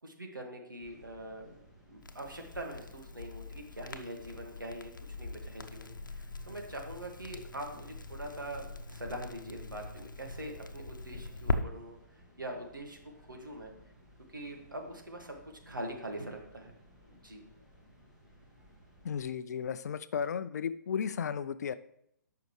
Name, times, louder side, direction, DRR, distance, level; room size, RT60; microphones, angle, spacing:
voice 1, 0.0-4.9 5.2-13.7 14.3-15.4 15.7-16.7 17.1-17.4, right 1 dB, 90° right, 2 dB, 1.9 m, -43 dB
sound 1, 0.8-19.4, equal, 5° right, 1.7 m, -60 dB
Crackle, 2.0-11.6, left 3 dB, 80° left, 0.9 m, -41 dB
voice 2, 19.0-21.7, left 7 dB, 55° left, 14 dB, 0.5 m, -34 dB
13.5 x 5.8 x 3.2 m, 0.74 s
figure-of-eight pair, 135°, 10 cm